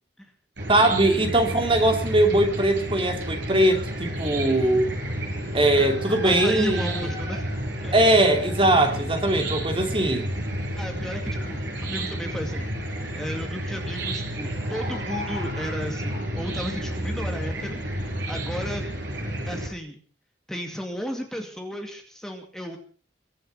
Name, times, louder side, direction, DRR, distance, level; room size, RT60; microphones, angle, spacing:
Chicken rooster / Cricket, 0.6-19.7, right 1 dB, 75° right, 5.8 m, -31 dB
voice 1, 0.7-4.9 5.5-7.1 7.9-10.3, right 1 dB, 30° right, 5 dB, 2.8 m, -21 dB
voice 2, 6.2-7.5 7.8-8.0 10.7-12.7 13.1-18.9 19.5-20.0 20.5-22.8, equal, 5° left, 3 dB, 2.3 m, -34 dB
23.0 x 7.8 x 7.1 m, 0.42 s
head